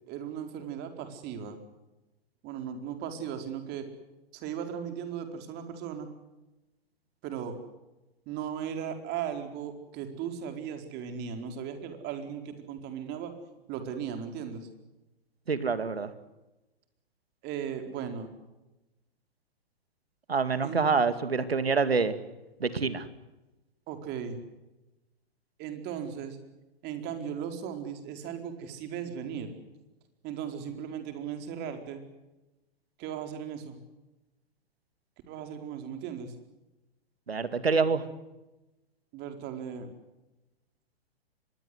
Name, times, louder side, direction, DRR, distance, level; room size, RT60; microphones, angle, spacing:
voice 1, 0.1-1.6 2.4-3.9 4.3-6.1 7.2-7.6 8.3-13.3 13.7-14.7 17.4-18.3 20.6-20.9 23.9-24.4 25.6-26.4 26.8-29.5 30.2-32.0 33.0-33.8 35.3-36.3 39.1-39.9, right 8 dB, 35° right, 6 dB, 4.6 m, -37 dB
voice 2, 15.5-16.1 20.3-22.1 22.6-23.1 37.3-38.1, right 5 dB, 85° right, 12 dB, 2.4 m, -26 dB
25.0 x 21.5 x 8.0 m, 1.0 s
hypercardioid pair, 115°, 30 cm